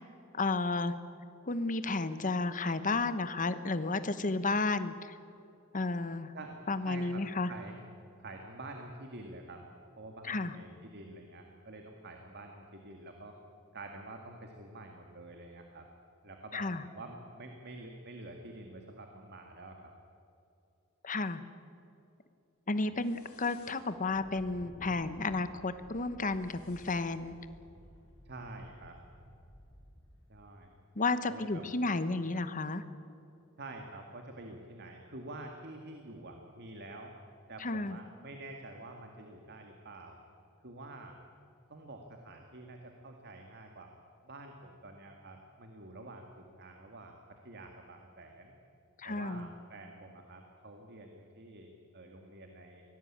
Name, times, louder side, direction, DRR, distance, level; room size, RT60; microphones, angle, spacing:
voice 1, 0.3-0.9 1.4-5.1 5.7-6.3 6.7-7.5 10.3-10.5 16.5-16.8 21.0-21.4 22.7-27.3 31.0-32.8 37.6-38.0 49.0-49.5, left 3 dB, 35° left, 12 dB, 1.1 m, -32 dB
voice 2, 6.9-7.2 7.5-7.8 8.2-9.6 10.0-13.4 13.7-15.9 16.2-19.9 28.2-29.0 30.3-30.7 31.3-31.6 33.6-37.1 37.5-40.2 40.6-41.2 41.7-43.9 44.2-48.5 49.0-52.8, right 2 dB, 50° right, 3 dB, 2.0 m, -48 dB
sound 1, 23.0-30.5, equal, 70° left, 5.4 m, -56 dB
23.5 x 18.5 x 8.8 m, 2.7 s
head